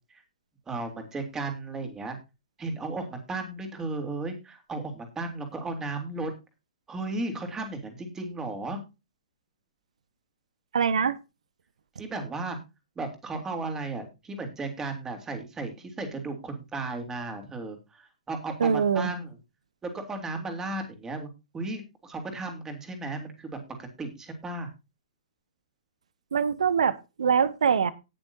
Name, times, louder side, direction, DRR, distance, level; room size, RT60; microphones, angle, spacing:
voice 1, 0.7-2.2 2.6-6.3 6.9-8.8 12.0-12.6 13.0-19.3 19.8-21.3 21.5-24.7, right 2 dB, 15° right, 6 dB, 3.4 m, -35 dB
voice 2, 10.7-11.2 18.6-19.1 26.3-27.9, right 6 dB, 65° right, 17 dB, 0.9 m, -23 dB
19.0 x 7.0 x 2.8 m, 0.27 s
figure-of-eight pair, 115°, 4 cm